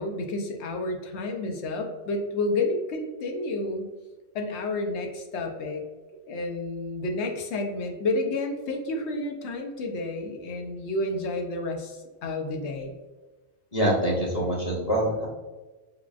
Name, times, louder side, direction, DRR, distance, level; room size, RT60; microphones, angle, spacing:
voice 1, 0.0-3.9 4.3-5.8 6.2-12.9, left 2 dB, 80° left, 3 dB, 0.9 m, -30 dB
voice 2, 13.7-15.3, right 1 dB, 35° left, -3 dB, 0.8 m, -25 dB
5.1 x 2.4 x 2.4 m, 1.2 s
omnidirectional pair, 1.1 m